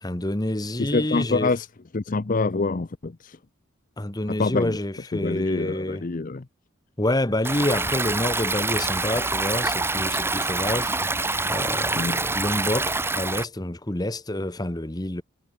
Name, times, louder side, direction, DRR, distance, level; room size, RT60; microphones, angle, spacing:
voice 1, 0.0-1.6 4.0-6.1 7.0-10.9 11.5-15.2, left 1 dB, 20° left, 1.2 m, -28 dB
voice 2, 0.8-1.7 1.9-3.4 4.3-4.8 5.2-6.4 12.0-12.2, left 3 dB, 40° left, 0.6 m, -26 dB
Stream, 7.4-13.4, right 3 dB, 10° right, 2.1 m, -26 dB
head